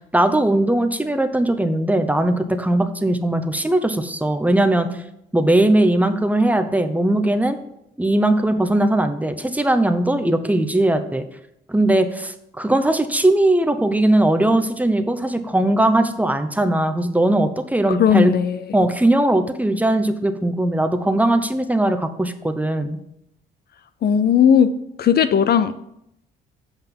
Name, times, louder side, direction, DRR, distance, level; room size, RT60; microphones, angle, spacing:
voice 1, 0.1-4.9 5.3-7.6 8.0-11.2 11.7-18.3 18.7-23.0, right 1 dB, 5° right, 7 dB, 0.8 m, -19 dB
voice 2, 17.9-18.6 24.0-24.7 25.0-25.7, left 8 dB, 55° left, 13 dB, 0.5 m, -16 dB
8.0 x 5.6 x 5.4 m, 0.79 s
cardioid pair, 90°, 20 cm